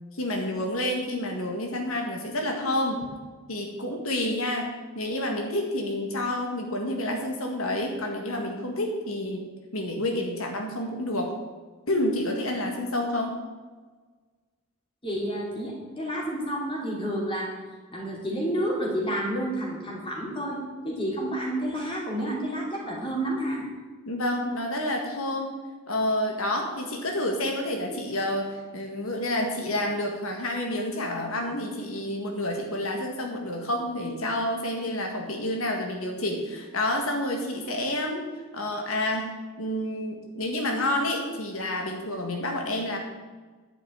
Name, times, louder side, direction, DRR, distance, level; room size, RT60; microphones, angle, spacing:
voice 1, 0.2-3.1 3.5-11.4 11.9-13.4 24.1-25.5 25.9-38.2 38.5-43.0, left 1 dB, 80° left, 2 dB, 1.8 m, -29 dB
voice 2, 15.0-17.5 17.9-23.6, right 1 dB, 25° left, -2 dB, 3.0 m, -30 dB
10.5 x 6.1 x 8.8 m, 1.4 s
head